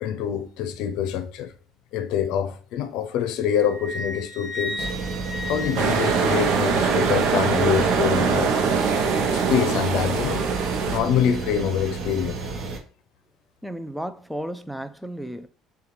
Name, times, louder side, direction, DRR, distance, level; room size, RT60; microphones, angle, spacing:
voice 1, 0.0-1.5 1.9-4.9 5.5-8.5 9.3-10.6 10.9-12.4, left 9 dB, 75° left, 0.6 m, -25 dB
Wind instrument woodwind instrument, 3.5-6.9, left 1 dB, 25° right, 1.4 m, -35 dB
sound 1, 4.8-12.8, right 3 dB, 50° right, 0.9 m, -32 dB
sound 2, 5.8-11.0, right 5 dB, 70° right, 0.7 m, -22 dB
voice 2, 13.6-15.5, right 1 dB, 5° right, 0.4 m, -33 dB
6.6 x 2.3 x 3.1 m
cardioid pair, 115°, 0 cm